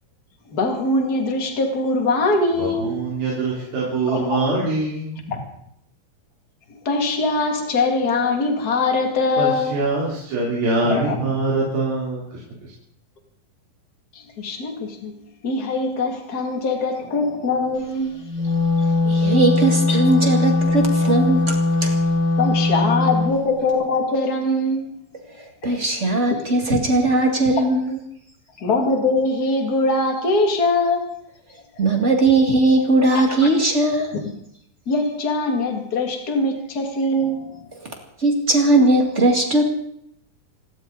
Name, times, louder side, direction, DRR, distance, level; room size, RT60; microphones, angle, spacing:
voice 1, 0.5-2.9 4.1-4.4 5.3-5.4 6.8-9.8 10.9-11.1 14.4-15.1 15.4-18.2 19.9-20.0 22.4-24.9 26.3-26.4 28.6-31.1 33.1-33.4 34.1-34.3 34.9-37.6, left 2 dB, 30° left, 3 dB, 2.4 m, -22 dB
voice 2, 2.5-5.3 9.4-12.7, right 2 dB, 70° right, -5 dB, 5.4 m, -24 dB
Wind instrument woodwind instrument, 18.2-23.4, left 3 dB, 50° left, 4.3 m, -20 dB
voice 3, 19.0-22.0 25.6-28.0 31.8-34.1 38.2-39.6, right 2 dB, 30° right, 3 dB, 1.5 m, -18 dB
27.5 x 12.5 x 4.0 m, 0.73 s
omnidirectional pair, 4.3 m